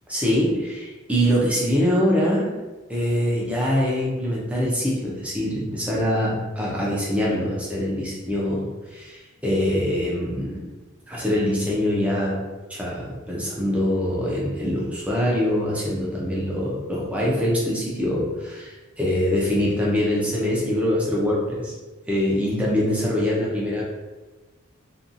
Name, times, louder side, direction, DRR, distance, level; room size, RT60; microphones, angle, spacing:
voice 1, 0.1-2.6 2.9-10.6 11.1-21.7 22.1-23.8, equal, 5° right, -5 dB, 0.5 m, -24 dB
2.7 x 2.3 x 2.5 m, 1.2 s
head